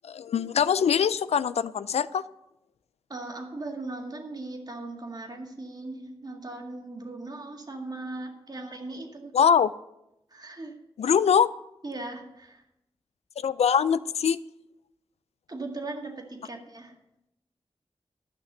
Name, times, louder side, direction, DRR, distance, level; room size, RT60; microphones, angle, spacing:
voice 1, 0.0-2.2 9.3-9.7 11.0-11.5 13.4-14.4, left 7 dB, 85° left, 16 dB, 0.4 m, -23 dB
voice 2, 3.1-9.3 10.3-10.8 11.8-12.6 15.5-17.0, right 2 dB, 40° right, 3 dB, 1.9 m, -38 dB
11.5 x 5.9 x 6.6 m, 0.85 s
cardioid pair, 60°, 11 cm